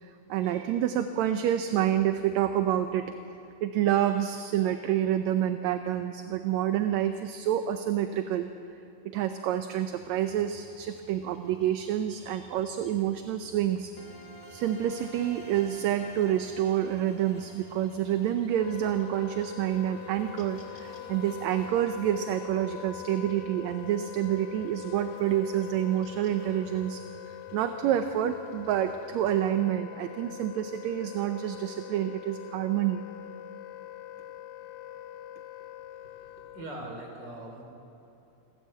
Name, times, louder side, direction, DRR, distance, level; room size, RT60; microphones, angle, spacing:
voice 1, 0.0-3.1 3.6-8.5 9.1-13.9 14.5-27.0 27.3-33.0, right 11 dB, 75° right, 8 dB, 2.0 m, -28 dB
Buzz, 9.9-29.5, equal, 10° left, 2.0 m, -55 dB
sound 1, 14.0-20.6, right 1 dB, 40° left, 0.7 m, -50 dB
Wind instrument woodwind instrument, 18.6-36.8, left 11 dB, 75° left, 1.9 m, -44 dB
voice 2, 35.8-37.6, right 1 dB, 35° right, 1 dB, 4.2 m, -42 dB
28.5 x 13.0 x 7.7 m, 3.0 s
omnidirectional pair, 3.4 m